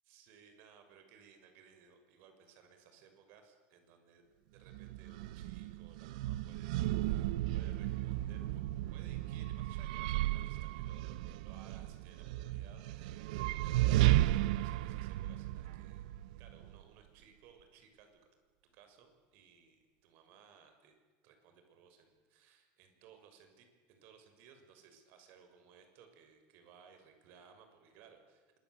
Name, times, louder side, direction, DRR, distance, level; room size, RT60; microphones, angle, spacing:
voice 1, 0.1-4.2 4.5-8.6 8.9-13.2 13.6-16.1 16.4-18.2 18.7-21.0 21.2-28.5, right 7 dB, 55° right, 6 dB, 6.3 m, -61 dB
sound 1, 4.7-16.8, right 15 dB, 85° right, 0.8 m, -34 dB
26.0 x 22.5 x 8.2 m, 1.5 s
cardioid pair, 155°, 4 cm